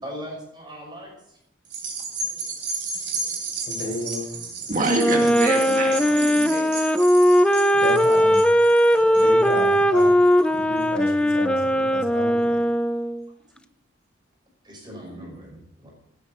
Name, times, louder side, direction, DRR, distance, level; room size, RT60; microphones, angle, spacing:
voice 1, 0.0-1.4 4.3-4.7 13.3-13.4 14.6-15.9, equal, 25° right, -1 dB, 5.7 m, -40 dB
sound 1, 1.7-10.3 10.8-10.9, right 3 dB, 65° right, 3.5 m, -33 dB
voice 2, 3.7-4.3 7.7-10.1 10.5-12.6, left 1 dB, 60° left, 0 dB, 5.2 m, -32 dB
voice 3, 4.7-6.8 15.0-15.2, right 2 dB, 45° right, 2 dB, 2.0 m, -26 dB
Wind instrument woodwind instrument, 4.9-13.3, equal, 5° left, 0.4 m, -19 dB
16.5 x 10.0 x 4.3 m, 0.73 s
head